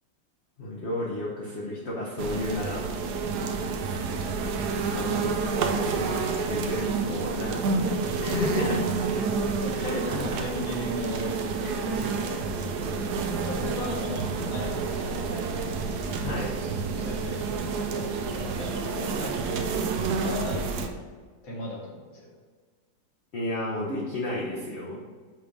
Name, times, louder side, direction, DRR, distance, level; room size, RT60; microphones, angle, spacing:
voice 1, 0.6-2.9 4.7-9.0 9.7-10.0 16.2-16.5 19.0-19.1 23.3-25.0, left 1 dB, 50° left, -5 dB, 0.8 m, -32 dB
sound 1, 2.2-20.9, right 4 dB, 70° right, 1.0 m, -29 dB
voice 2, 9.6-11.3 11.6-12.5 13.1-15.5 17.0-19.8 20.1-20.9 21.4-22.3, left 1 dB, 70° left, -4 dB, 2.2 m, -37 dB
6.0 x 3.4 x 5.2 m, 1.5 s
omnidirectional pair, 2.3 m